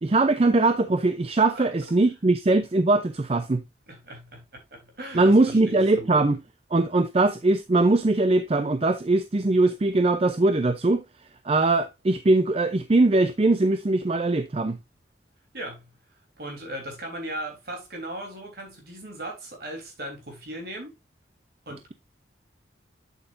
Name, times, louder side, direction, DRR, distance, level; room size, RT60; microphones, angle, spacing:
voice 1, 0.0-3.6 5.1-6.4 6.7-11.0 11.4-14.8, right 2 dB, 30° right, 0.5 m, -21 dB
voice 2, 3.9-4.4 4.7-6.1 15.5-15.9 16.4-20.9 21.6-21.9, right 1 dB, 55° right, 3.4 m, -38 dB
8.1 x 7.6 x 2.5 m
head